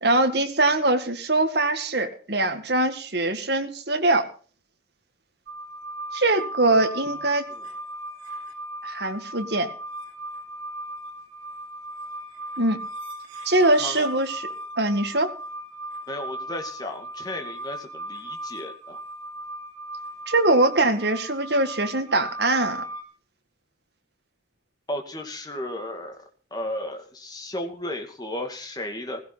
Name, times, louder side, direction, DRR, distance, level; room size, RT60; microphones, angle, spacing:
voice 1, 0.0-4.3 6.1-7.5 8.8-9.7 12.6-12.8 13.5-14.5 14.8-15.3 20.3-22.9, right 2 dB, 55° right, 6 dB, 2.0 m, -22 dB
sound 1, 5.5-23.0, right 1 dB, 85° right, 3.4 m, -37 dB
voice 2, 6.6-7.2 7.5-7.7 13.8-14.1 16.1-19.0 24.9-26.2 26.5-29.2, left 1 dB, 20° left, 4 dB, 2.4 m, -34 dB
16.5 x 16.5 x 4.1 m, 0.41 s
head